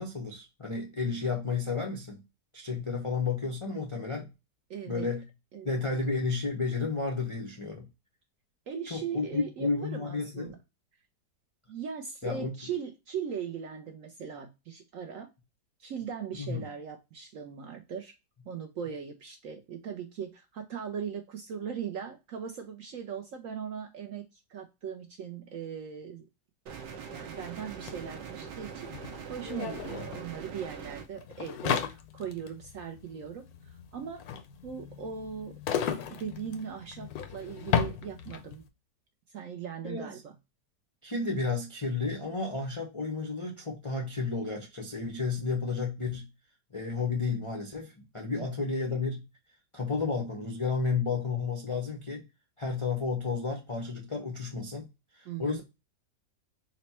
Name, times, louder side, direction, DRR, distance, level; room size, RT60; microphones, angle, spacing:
voice 1, 0.0-2.2 2.5-4.3 4.9-5.2 5.6-7.8 8.9-10.5 12.2-12.5 16.4-16.6 39.8-40.1 41.0-46.2 46.7-49.2 49.7-52.3 52.6-54.8 55.1-55.6, left 4 dB, 45° left, 0.4 m, -32 dB
voice 2, 4.7-5.1 5.5-5.8 8.7-10.6 11.7-15.3 15.8-18.1 18.4-26.3 27.1-34.2 34.6-38.6 39.3-40.3 48.4-48.7 55.3-55.6, right 7 dB, 70° right, 0.8 m, -39 dB
sound 1, 26.7-31.1, right 6 dB, 85° right, 1.4 m, -42 dB
sound 2, 27.9-28.0 28.2-38.6, left 8 dB, 70° left, 1.0 m, -35 dB
4.0 x 2.1 x 4.1 m
omnidirectional pair, 1.9 m